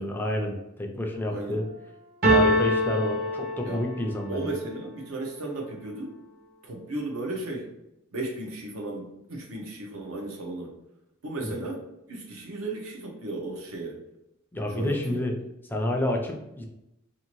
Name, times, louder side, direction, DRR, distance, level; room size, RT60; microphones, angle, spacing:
voice 1, 0.0-1.6 2.3-4.5 14.5-15.4 15.7-16.7, left 1 dB, 10° left, 1 dB, 0.3 m, -29 dB
voice 2, 1.3-1.6 3.6-3.8 4.3-6.1 6.6-7.7 8.1-10.7 11.2-11.8 12.1-14.0 14.7-15.2, right 2 dB, 85° right, 0 dB, 0.8 m, -35 dB
sound 1, 2.2-4.2, equal, 50° right, 0.7 m, -23 dB
2.7 x 2.5 x 2.9 m, 0.86 s
head